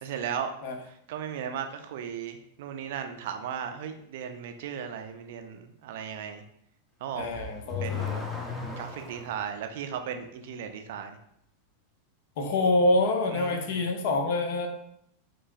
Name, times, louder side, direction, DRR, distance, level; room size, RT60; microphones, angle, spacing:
voice 1, 0.0-0.5 1.1-6.4 7.0-7.3 7.8-8.2 8.8-11.2 13.3-13.8, right 8 dB, 55° right, 6 dB, 0.4 m, -36 dB
Car / Accelerating revving vroom, 7.1-9.4, left 6 dB, 10° left, 0.7 m, -35 dB
voice 2, 7.2-8.2 12.4-14.7, left 2 dB, 50° left, 4 dB, 0.6 m, -26 dB
4.7 x 3.0 x 2.5 m, 0.72 s
figure-of-eight pair, 90°, 0 cm